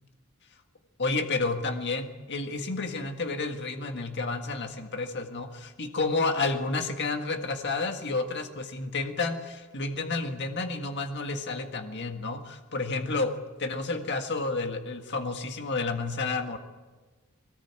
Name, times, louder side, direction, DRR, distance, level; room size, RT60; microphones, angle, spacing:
voice 1, 1.0-13.3 13.6-16.6, left 3 dB, 50° left, 4 dB, 1.8 m, -30 dB
21.5 x 19.0 x 8.9 m, 1.3 s
head